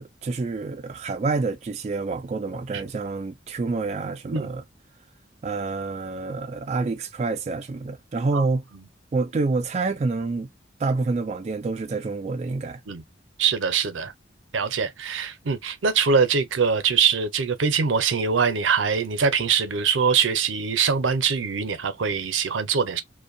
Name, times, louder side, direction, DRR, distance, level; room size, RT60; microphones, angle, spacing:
voice 1, 0.0-4.6 5.4-8.6 9.1-10.5 10.8-12.8, right 3 dB, 35° right, 0.3 m, -27 dB
voice 2, 13.4-14.1 14.5-23.0, right 6 dB, 90° right, 0.6 m, -23 dB
2.6 x 2.2 x 2.5 m
head